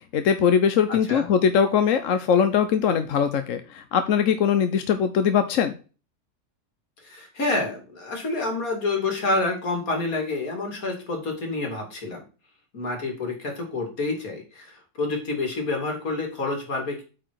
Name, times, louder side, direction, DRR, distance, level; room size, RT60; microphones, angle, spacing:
voice 1, 0.1-5.8, left 7 dB, 65° left, 9 dB, 1.1 m, -21 dB
voice 2, 0.9-1.3 7.0-12.2 12.7-17.0, left 2 dB, 80° left, 2 dB, 2.9 m, -28 dB
8.7 x 4.8 x 4.6 m, 0.34 s
omnidirectional pair, 1.5 m